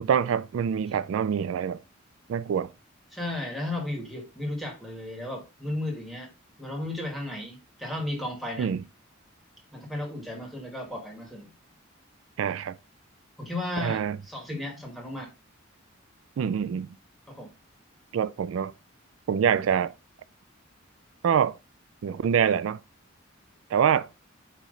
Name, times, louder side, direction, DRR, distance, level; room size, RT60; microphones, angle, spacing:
voice 1, 0.0-1.8 2.3-2.7 8.6-8.8 12.4-12.8 13.8-14.2 16.4-16.9 18.1-18.7 19.3-19.9 21.2-21.6 22.0-22.8 23.7-24.1, right 8 dB, 80° right, 0.3 m, -25 dB
voice 2, 3.1-6.3 6.6-8.7 9.7-11.5 13.4-15.3 17.3-17.5, left 1 dB, ahead, 1.9 m, -34 dB
9.3 x 3.1 x 3.9 m
head